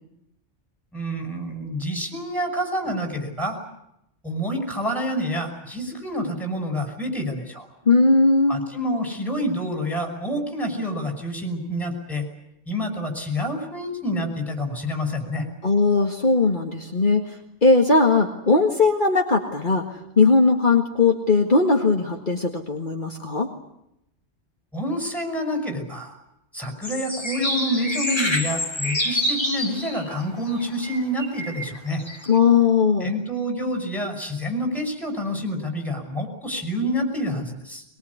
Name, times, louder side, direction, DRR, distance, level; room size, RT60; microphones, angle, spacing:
voice 1, 0.9-3.6 4.2-7.7 8.5-12.3 12.7-15.5 24.7-26.2 26.5-32.0 33.0-37.8, equal, ahead, 4 dB, 5.9 m, -28 dB
voice 2, 7.9-8.6 15.6-17.4 17.6-19.9 20.2-23.5 32.3-33.1, left 4 dB, 45° left, 1 dB, 2.1 m, -19 dB
sound 1, 26.8-30.2 30.5-32.4, left 1 dB, 20° left, 2.7 m, -28 dB
23.0 x 22.0 x 9.7 m, 0.82 s
omnidirectional pair, 1.2 m